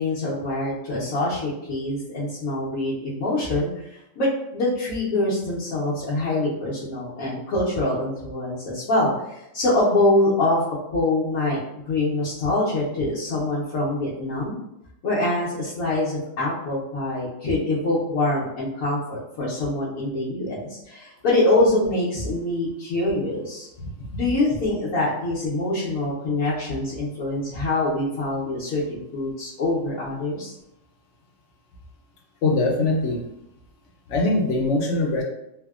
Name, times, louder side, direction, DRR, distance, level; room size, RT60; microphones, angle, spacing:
voice 1, 0.0-10.6 10.9-11.6 11.9-14.6 15.0-23.7 24.1-30.5, left 2 dB, 85° left, -9 dB, 1.2 m, -24 dB
voice 2, 32.4-33.2 34.1-35.2, left 2 dB, 70° left, 0 dB, 0.8 m, -22 dB
3.3 x 2.1 x 2.3 m, 0.85 s
omnidirectional pair, 1.4 m